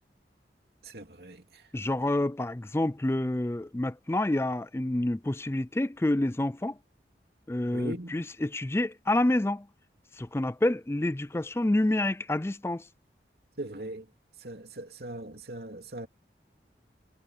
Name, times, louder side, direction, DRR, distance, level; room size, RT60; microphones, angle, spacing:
voice 1, 0.9-1.4 7.7-8.2 13.6-14.0 14.4-16.1, right 1 dB, 65° right, 2.8 m, -39 dB
voice 2, 1.7-6.8 7.5-9.7 10.2-12.8, left 1 dB, 15° left, 0.4 m, -28 dB
head